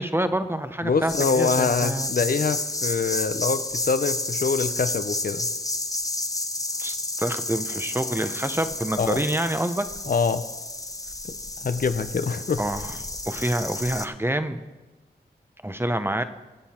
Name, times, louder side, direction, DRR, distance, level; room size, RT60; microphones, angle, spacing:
voice 1, 0.0-2.1 6.8-9.9 12.6-12.9 13.3-14.6 15.6-16.2, right 1 dB, 15° right, 10 dB, 0.9 m, -27 dB
voice 2, 0.8-5.5 9.0-9.2 10.1-10.5 11.6-12.6, left 5 dB, 55° left, 10 dB, 0.8 m, -25 dB
sound 1, 1.1-14.1, left 2 dB, 20° left, 0.9 m, -31 dB
22.5 x 7.9 x 4.4 m, 1.2 s
cardioid pair, 60°, 17 cm